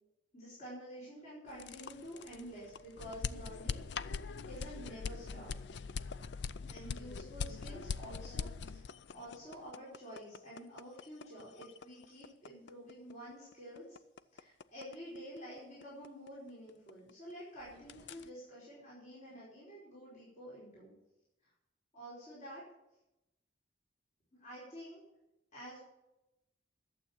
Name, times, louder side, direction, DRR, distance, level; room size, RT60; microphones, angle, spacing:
voice 1, 0.3-4.2 4.4-5.5 6.6-8.9 9.1-14.0 14.3-20.9 21.9-22.6 24.4-25.0 25.5-25.8, equal, 40° left, -8 dB, 5.0 m, -49 dB
sound 1, 1.5-17.3 17.6-18.3, left 5 dB, 65° left, 0.4 m, -43 dB
12.0 x 7.9 x 7.2 m, 0.91 s
head